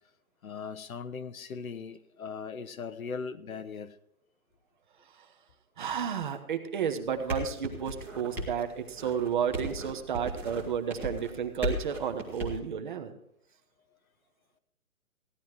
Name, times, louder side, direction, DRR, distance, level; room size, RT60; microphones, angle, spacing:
voice 1, 0.4-4.0 8.4-8.5, left 5 dB, 70° left, 13 dB, 1.0 m, -39 dB
voice 2, 5.8-13.2, right 8 dB, 35° right, 7 dB, 1.1 m, -32 dB
sound 1, 7.0-12.6, equal, 5° right, 1.0 m, -37 dB
16.0 x 10.5 x 4.7 m, 0.78 s
hypercardioid pair, 160°, 44 cm